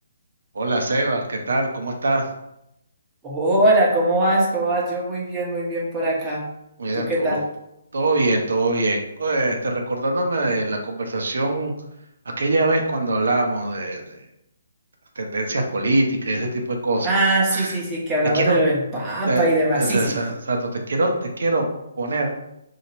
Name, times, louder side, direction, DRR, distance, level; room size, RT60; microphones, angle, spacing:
voice 1, 0.5-2.3 6.8-7.4 7.9-11.7 12.4-14.2 15.2-17.1 17.5-17.7 18.3-18.6 19.3-19.5 19.7-21.7 22.0-22.3, right 2 dB, 60° right, 2 dB, 0.8 m, -23 dB
voice 2, 3.2-6.4 6.9-7.4 17.0-20.2, right 1 dB, 15° right, -5 dB, 1.1 m, -21 dB
2.8 x 2.8 x 4.4 m, 0.84 s
figure-of-eight pair, 135°, 0 cm